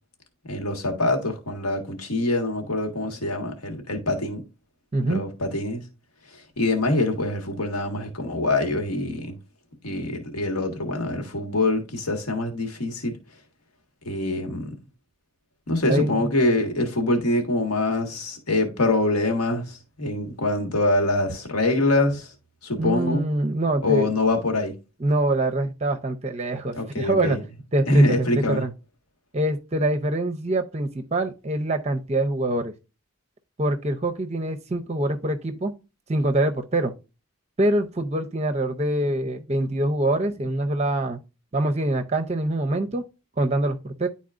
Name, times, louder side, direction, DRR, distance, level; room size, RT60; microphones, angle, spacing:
voice 1, 0.4-4.4 5.0-5.8 6.3-9.4 9.8-13.1 14.0-14.7 15.7-22.3 22.6-23.2 23.8-24.7 26.7-27.4 27.9-28.6, left 2 dB, 80° left, 1.6 m, -24 dB
voice 2, 15.9-16.3 22.8-24.1 25.0-27.4 27.7-28.7 29.3-32.7 33.6-35.7 36.1-36.9 37.6-41.2 41.5-43.0 43.4-44.1, right 1 dB, 30° right, 0.5 m, -24 dB
10.5 x 4.2 x 2.5 m
head